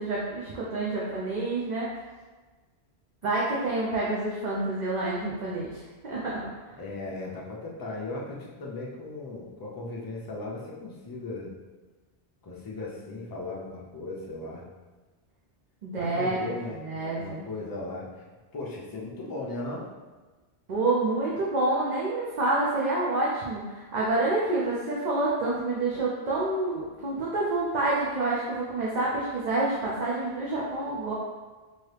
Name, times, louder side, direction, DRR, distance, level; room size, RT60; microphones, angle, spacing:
voice 1, 0.0-1.9 3.2-5.8 6.0-6.4 15.8-16.4 16.8-17.4 20.7-31.1, right 2 dB, 55° right, -6 dB, 0.6 m, -28 dB
voice 2, 6.8-11.5 12.4-14.7 16.0-18.2 18.5-19.9, left 2 dB, 30° left, -4 dB, 0.4 m, -37 dB
2.8 x 2.7 x 3.3 m, 1.3 s
omnidirectional pair, 1.1 m